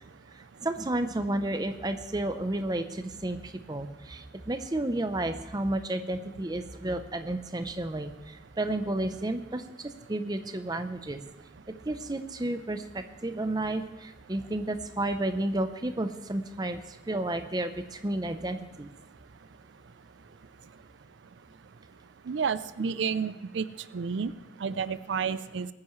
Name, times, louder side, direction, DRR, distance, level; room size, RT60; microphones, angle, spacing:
voice 1, 0.3-11.2 11.7-18.9, right 1 dB, 20° right, 9 dB, 0.6 m, -32 dB
voice 2, 22.3-23.7 23.9-24.3 24.6-25.7, right 6 dB, 85° right, 15 dB, 0.4 m, -30 dB
21.0 x 9.5 x 3.2 m, 0.99 s
head